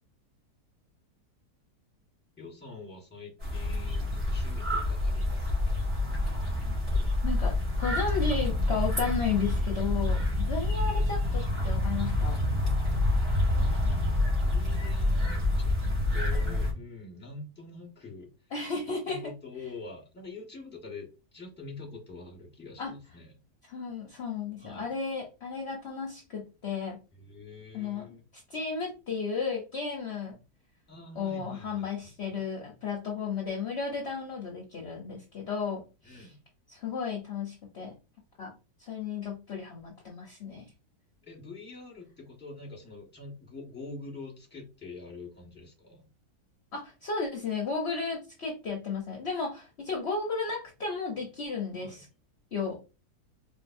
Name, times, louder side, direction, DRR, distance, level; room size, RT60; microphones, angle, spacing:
voice 1, 2.4-5.8 10.4-10.6 13.5-15.8 16.1-18.3 19.1-23.3 24.6-24.9 27.1-28.2 30.9-32.4 36.0-36.4 41.2-46.1 51.8-52.0, left 3 dB, 5° left, -3 dB, 1.3 m, -45 dB
sound 1, 3.4-16.7, left 1 dB, 35° right, 2.2 m, -27 dB
voice 2, 7.2-12.5 18.5-19.2 22.8-22.9 23.7-27.0 27.7-28.1 28.5-30.4 31.2-36.3 36.7-37.9 38.4-40.7 46.7-52.1 52.5-52.8, left 5 dB, 50° left, -1 dB, 0.9 m, -34 dB
4.4 x 2.5 x 2.6 m, 0.30 s
omnidirectional pair, 1.7 m